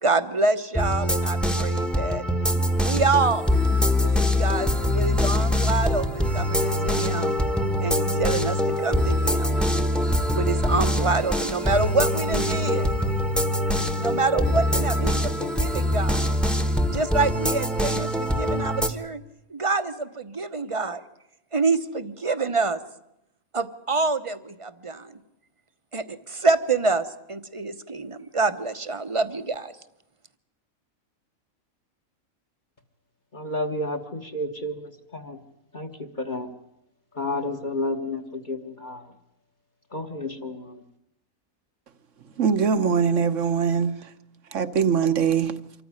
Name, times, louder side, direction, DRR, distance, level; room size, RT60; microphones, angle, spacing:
voice 1, 0.0-2.2 2.8-3.5 4.0-7.3 7.8-9.6 10.3-12.9 14.0-16.3 16.9-19.2 19.5-21.0 21.5-22.8 23.5-25.2 25.9-29.7, right 3 dB, 25° right, 0.9 m, -26 dB
sound 1, 0.7-18.9, left 1 dB, ahead, 1.1 m, -23 dB
voice 2, 33.3-35.4 35.7-36.5 37.1-39.1 39.9-40.8, left 1 dB, 35° left, 1.4 m, -31 dB
voice 3, 42.4-44.1 44.5-45.5, right 6 dB, 65° right, 1.3 m, -22 dB
25.5 x 14.5 x 9.7 m
omnidirectional pair, 1.4 m